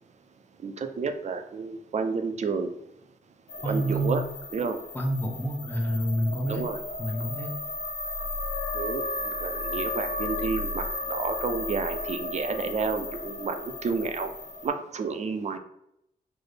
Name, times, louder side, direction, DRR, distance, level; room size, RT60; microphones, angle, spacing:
voice 1, 0.6-2.7 3.7-4.2 4.5-4.8 6.5-6.8 8.7-14.3 14.6-15.6, right 5 dB, 45° right, 7 dB, 0.4 m, -30 dB
sound 1, 3.5-14.7, left 2 dB, 80° left, 0.8 m, -34 dB
voice 2, 3.6-4.2 4.9-6.7 7.0-7.6, right 1 dB, 10° left, 1 dB, 0.6 m, -28 dB
3.9 x 2.0 x 3.2 m, 0.78 s
wide cardioid pair, 110°, 16 cm